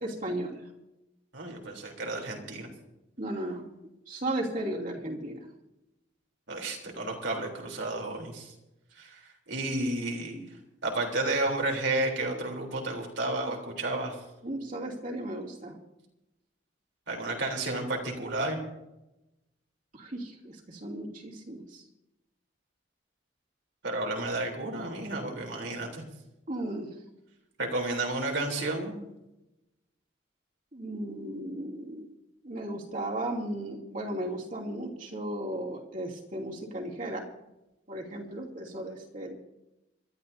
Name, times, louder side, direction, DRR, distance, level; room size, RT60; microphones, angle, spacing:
voice 1, 0.0-0.6 3.2-3.6 4.1-5.5 14.4-15.7 19.9-21.8 26.5-26.9 30.7-32.1 32.4-37.3 37.9-39.3, right 1 dB, 45° right, -2 dB, 2.8 m, -35 dB
voice 2, 1.3-2.7 6.5-8.5 9.0-10.4 10.8-14.2 17.1-18.6 23.8-26.0 27.6-29.0, right 2 dB, 75° right, 1 dB, 3.6 m, -32 dB
26.5 x 13.0 x 2.8 m, 0.94 s
head